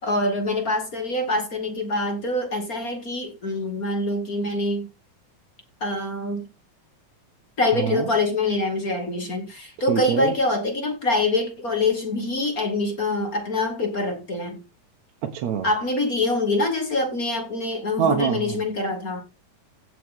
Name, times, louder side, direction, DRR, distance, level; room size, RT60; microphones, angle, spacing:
voice 1, 0.0-4.9 5.8-6.5 7.6-14.6 15.6-19.2, left 2 dB, 30° left, 2.0 m, -25 dB
voice 2, 7.7-8.1 9.9-10.3 15.3-15.7 18.0-18.6, right 8 dB, 65° right, 2.2 m, -24 dB
16.0 x 6.2 x 3.6 m
omnidirectional pair, 3.7 m